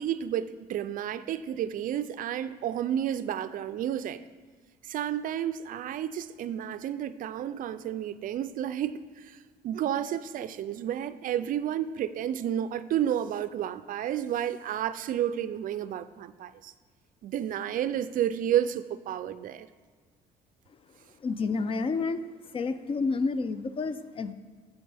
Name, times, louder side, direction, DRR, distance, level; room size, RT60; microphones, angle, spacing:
voice 1, 0.0-4.2 4.8-16.7 17.2-19.7, right 10 dB, 55° right, 13 dB, 0.4 m, -31 dB
voice 2, 21.2-22.2 22.5-24.3, left 4 dB, 35° left, 13 dB, 0.4 m, -29 dB
8.6 x 7.3 x 3.4 m, 1.5 s
cardioid pair, 110°, 17 cm